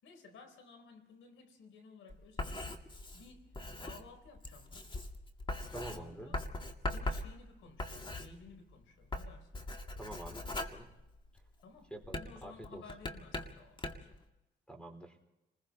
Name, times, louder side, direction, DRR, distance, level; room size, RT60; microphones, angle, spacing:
voice 1, 0.0-4.9 5.8-6.4 6.8-9.6 11.6-14.3, left 4 dB, 80° left, 7 dB, 4.2 m, -56 dB
Writing, 2.1-8.7 9.0-11.5 12.0-14.2, left 2 dB, 25° left, 2.1 m, -41 dB
voice 2, 5.7-6.4 10.0-10.9 11.9-12.8 14.7-15.2, right 1 dB, 5° left, 6 dB, 4.2 m, -47 dB
30.0 x 20.5 x 4.2 m, 0.93 s
cardioid pair, 90°, 20 cm